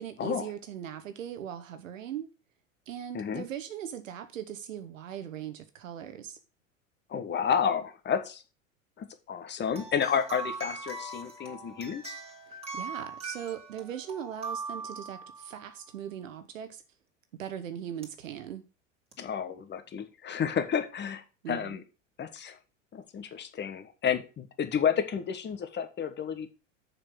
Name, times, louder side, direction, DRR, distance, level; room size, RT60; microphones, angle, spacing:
voice 1, 0.0-2.3 2.9-6.4 12.5-16.8 17.4-18.6 21.4-21.8, right 9 dB, 75° right, 1.1 m, -39 dB
voice 2, 7.1-8.4 9.0-12.1 19.2-21.8 22.2-22.6 22.9-26.5, left 7 dB, 25° left, 1.4 m, -31 dB
sound 1, 9.7-15.7 18.0-18.1 19.1-19.2, right 3 dB, 15° right, 2.5 m, -40 dB
6.9 x 5.8 x 6.2 m
figure-of-eight pair, 80°, 39 cm